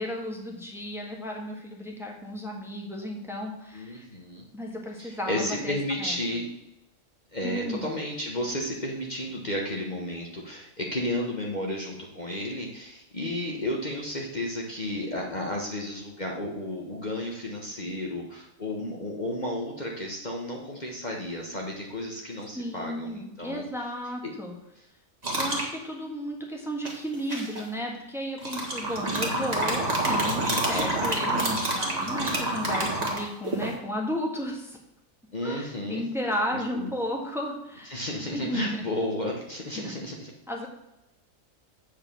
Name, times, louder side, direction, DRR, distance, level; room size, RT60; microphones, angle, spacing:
voice 1, 0.0-4.1 4.5-5.7 6.0-6.2 7.4-7.9 22.5-24.5 25.3-34.8 35.4-38.0 38.3-38.8 39.7-39.9 40.5-40.7, equal, ahead, -1 dB, 1.6 m, -34 dB
voice 2, 3.7-4.5 5.0-6.5 7.3-23.7 24.2-24.3 29.0-29.4 35.3-36.0 36.5-36.9 37.9-40.3, left 1 dB, 35° left, -2 dB, 1.3 m, -32 dB
sound 1, 25.2-25.7 26.8-27.6 28.4-33.7, right 1 dB, 30° right, 1.9 m, -27 dB
8.3 x 5.0 x 6.9 m, 0.87 s
omnidirectional pair, 1.4 m